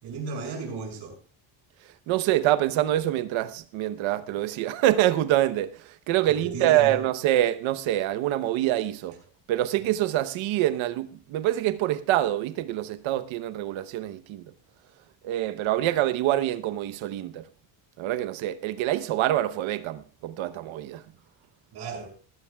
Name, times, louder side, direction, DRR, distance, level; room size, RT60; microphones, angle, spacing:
voice 1, 0.0-1.1 6.3-6.9 21.7-22.1, right 4 dB, 60° right, 6.3 m, -34 dB
voice 2, 2.1-9.2 9.5-14.5 15.2-17.4 18.0-21.0, right 13 dB, 80° right, 1.0 m, -25 dB
19.0 x 16.0 x 2.3 m
cardioid pair, 175°, 46 cm